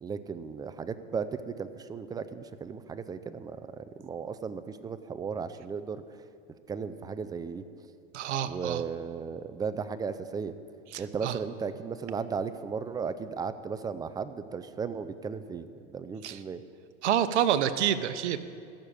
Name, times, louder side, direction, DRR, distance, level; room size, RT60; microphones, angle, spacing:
voice 1, 0.0-6.0 6.7-7.6 8.4-10.5 11.0-16.6, right 5 dB, 10° right, 11 dB, 0.4 m, -35 dB
voice 2, 8.1-8.8 10.9-11.4 16.2-16.4 17.0-18.4, right 10 dB, 80° right, 11 dB, 0.8 m, -28 dB
14.0 x 6.5 x 8.6 m, 2.3 s
hypercardioid pair, 115°, 34 cm